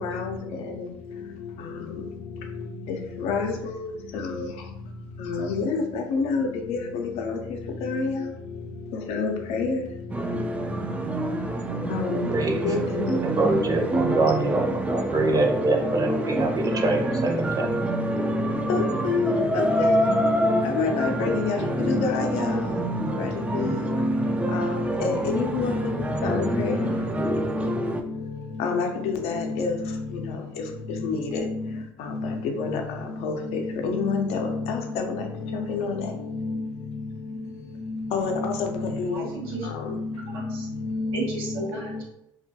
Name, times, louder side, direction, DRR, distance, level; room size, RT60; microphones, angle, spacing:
voice 1, 0.0-0.4 2.9-3.0 3.2-3.5 3.8-3.9 5.2-6.8 7.3-7.4 7.8-8.1 9.1-9.8 11.9-12.2 12.6-13.1 18.7-19.9 20.7-21.6 21.9-22.5 23.2-23.3 23.5-24.1 24.5-24.7 25.0-25.9 26.2-26.8 28.6-29.7 31.0-31.4 32.4-32.8 33.2-33.3 33.8-35.0 35.7-36.0 38.1-38.5 39.0-39.2 40.9-41.1, left 4 dB, 65° left, 3 dB, 0.5 m, -26 dB
sound 1, 10.1-28.0, right 1 dB, 10° right, 0.3 m, -27 dB
voice 2, 12.3-12.7 13.2-17.7, right 2 dB, 35° right, 2 dB, 0.7 m, -24 dB
voice 3, 39.1-39.7 40.3-40.7 41.1-42.0, right 3 dB, 90° right, -3 dB, 0.8 m, -33 dB
2.3 x 2.2 x 2.7 m, 0.78 s
hypercardioid pair, 75°, 11 cm